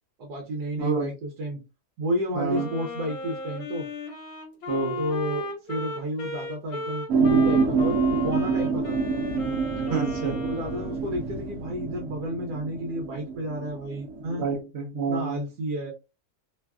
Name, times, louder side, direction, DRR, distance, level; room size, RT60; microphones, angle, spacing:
voice 1, 0.2-1.6 2.0-3.9 5.0-9.0 10.4-14.4 15.1-15.9, equal, 85° right, 1 dB, 1.3 m, -31 dB
voice 2, 0.8-1.1 2.3-2.7 4.7-5.0 9.9-10.4 14.2-15.4, right 4 dB, 50° right, -2 dB, 0.9 m, -28 dB
Wind instrument woodwind instrument, 2.5-11.0, left 1 dB, 60° left, 1.2 m, -35 dB
sound 1, 7.1-14.6, right 4 dB, 70° right, 1.0 m, -27 dB
3.1 x 2.3 x 2.3 m, 0.27 s
omnidirectional pair, 1.7 m